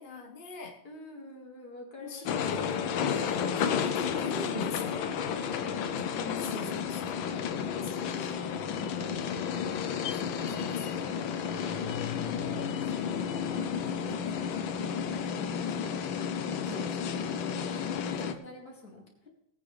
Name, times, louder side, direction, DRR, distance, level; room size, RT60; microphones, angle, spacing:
voice 1, 0.0-0.8 2.0-6.1 6.4-7.2 7.7-8.4 10.3-11.0 13.9-14.3 16.6-16.9, left 2 dB, 30° left, 1 dB, 1.2 m, -42 dB
voice 2, 0.8-2.7 5.5-7.0 8.6-9.8 10.2-11.6 12.2-16.1 16.4-19.3, left 2 dB, 50° left, -1 dB, 3.0 m, -47 dB
sound 1, 2.3-18.3, left 7 dB, 80° left, 1.6 m, -32 dB
19.5 x 8.9 x 3.3 m, 0.85 s
omnidirectional pair, 2.2 m